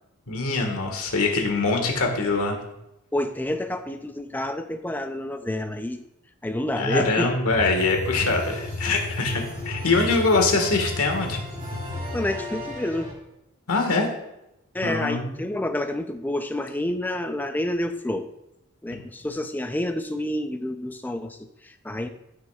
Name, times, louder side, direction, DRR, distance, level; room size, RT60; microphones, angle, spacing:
voice 1, 0.3-2.6 6.8-11.4 13.7-14.1 14.8-15.4 18.9-19.0, left 3 dB, 75° left, 2 dB, 1.5 m, -23 dB
voice 2, 3.1-6.0 6.4-7.3 12.1-13.1 14.7-18.3 18.8-22.1, left 1 dB, 10° left, 8 dB, 0.4 m, -29 dB
sound 1, 7.5-13.1, left 2 dB, 30° right, 2.5 m, -33 dB
13.5 x 5.9 x 2.3 m, 0.89 s
head